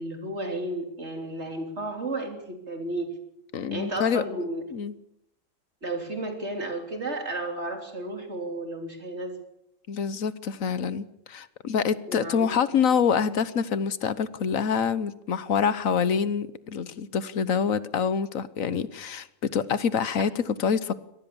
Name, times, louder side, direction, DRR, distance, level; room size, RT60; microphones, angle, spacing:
voice 1, 0.0-3.2 3.7-4.6 5.8-9.4 12.1-12.5, right 2 dB, 55° right, 4 dB, 3.9 m, -33 dB
voice 2, 3.5-4.2 4.7-4.9 9.9-20.9, left 6 dB, 80° left, 15 dB, 1.4 m, -26 dB
24.0 x 19.0 x 7.1 m, 0.78 s
omnidirectional pair, 1.4 m